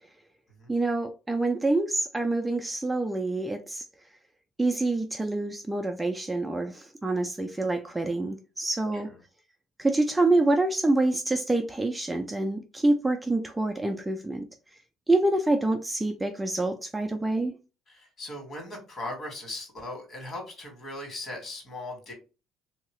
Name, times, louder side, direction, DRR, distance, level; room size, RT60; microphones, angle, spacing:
voice 1, 0.7-3.8 4.6-9.1 9.8-14.5 15.1-17.5, right 2 dB, 10° right, 0.4 m, -26 dB
voice 2, 17.9-22.1, left 2 dB, 40° left, 1.7 m, -39 dB
2.8 x 2.7 x 3.0 m
supercardioid pair, 95°, 0 cm